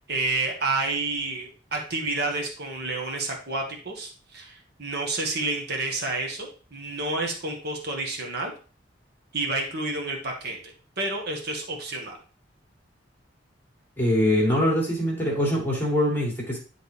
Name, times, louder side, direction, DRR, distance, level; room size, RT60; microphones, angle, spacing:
voice 1, 0.1-8.5 9.3-12.2, right 3 dB, 55° right, 1 dB, 1.5 m, -30 dB
voice 2, 14.0-16.6, left 1 dB, 10° left, -4 dB, 2.2 m, -23 dB
11.0 x 3.8 x 3.3 m, 0.38 s
head